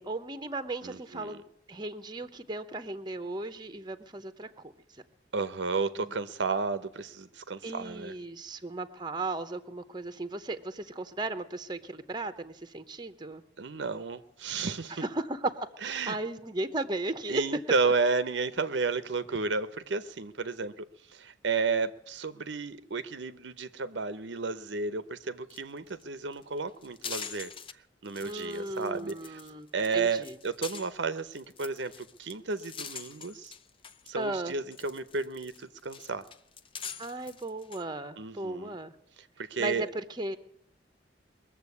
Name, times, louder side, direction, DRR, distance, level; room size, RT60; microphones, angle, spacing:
voice 1, 0.0-4.5 6.0-6.1 7.6-13.4 15.0-17.4 17.8-17.9 28.2-30.4 34.2-34.5 37.0-38.9 39.6-40.4, right 2 dB, 25° right, 10 dB, 0.9 m, -36 dB
voice 2, 0.8-1.4 5.3-8.1 13.6-15.0 15.8-16.2 17.3-20.8 21.1-27.5 28.0-29.4 29.7-33.5 34.1-36.2 38.2-38.8 39.4-39.9, right 4 dB, 70° right, 12 dB, 0.8 m, -32 dB
sound 1, 25.5-25.6 25.9-26.0 26.3-27.7 28.1-29.5 29.8-34.1 34.5-37.8, left 6 dB, 30° left, 0.6 m, -44 dB
21.5 x 7.4 x 8.4 m, 0.73 s
head